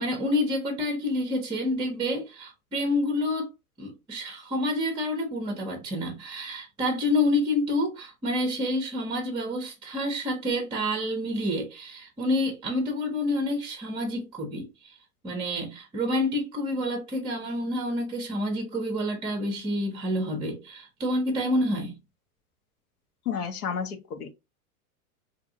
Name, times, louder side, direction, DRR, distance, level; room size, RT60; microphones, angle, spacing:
voice 1, 0.0-3.5 3.8-14.9 15.2-22.0, left 1 dB, 10° right, 0.6 m, -28 dB
voice 2, 23.3-24.3, left 7 dB, 80° left, 0.9 m, -31 dB
2.8 x 2.6 x 2.6 m
hypercardioid pair, 120°, 44 cm